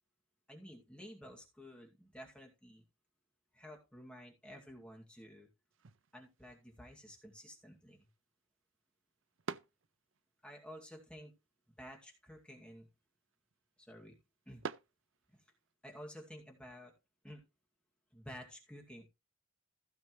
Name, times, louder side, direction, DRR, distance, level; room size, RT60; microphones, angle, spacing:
voice 1, 0.5-2.8 3.5-5.5 6.1-8.1 10.4-11.3 11.8-12.9 13.8-14.2 14.5-14.6 15.3-15.4 15.8-16.9 17.2-17.4 18.1-19.1, equal, 5° left, 0 dB, 2.3 m, -52 dB
sound 1, 5.7-15.7, right 5 dB, 65° right, 0.6 m, -52 dB
15.5 x 6.6 x 3.2 m, 0.26 s
head